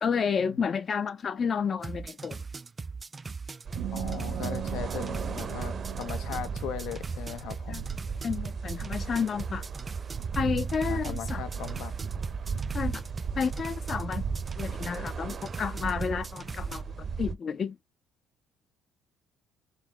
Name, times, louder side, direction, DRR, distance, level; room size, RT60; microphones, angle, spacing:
voice 1, 0.0-2.4 7.7-7.8 8.2-9.6 10.4-11.4 12.7-13.0 13.4-14.3 14.6-16.8 17.2-17.8, left 6 dB, 40° left, 0.7 m, -30 dB
sound 1, 1.8-16.8, right 4 dB, 25° right, 0.3 m, -40 dB
sound 2, 3.6-17.3, right 5 dB, 45° right, 0.9 m, -36 dB
sound 3, 3.7-7.3, right 9 dB, 70° right, 1.3 m, -39 dB
voice 2, 3.9-7.8 10.9-11.9, left 9 dB, 75° left, 1.1 m, -38 dB
3.9 x 3.7 x 3.3 m
supercardioid pair, 85°, 0 cm